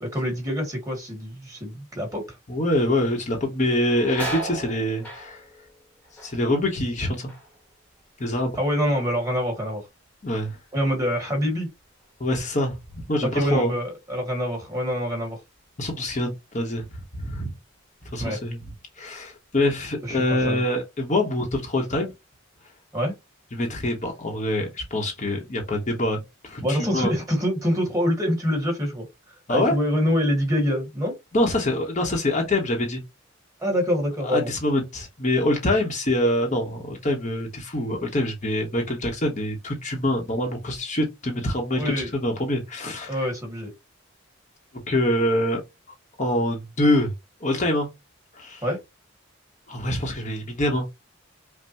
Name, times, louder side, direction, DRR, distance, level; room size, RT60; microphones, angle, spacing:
voice 1, 0.0-2.4 8.6-9.9 10.7-11.7 13.2-15.4 18.2-18.4 20.0-20.6 22.9-23.1 26.6-29.1 29.5-31.1 33.6-34.5 41.7-42.1 43.1-43.7 48.6-48.8, equal, 15° right, 1.5 m, -25 dB
voice 2, 2.5-5.4 6.2-7.3 8.2-8.6 10.2-10.6 12.2-13.7 15.8-16.9 17.1-17.5 18.1-18.6 19.0-22.1 23.5-27.1 29.5-29.7 31.3-33.0 34.2-43.3 44.9-45.6 46.2-47.1 47.4-47.9 48.3-48.6 49.7-50.8, left 1 dB, 35° left, 0.9 m, -25 dB
sound 1, 3.6-9.0 9.3-9.9 10.4-13.3 13.6-13.7 14.7-14.9 15.4-16.5 16.9-17.1 17.7-18.3 18.6-19.8, right 1 dB, 5° left, 1.0 m, -40 dB
5.4 x 2.1 x 2.9 m
head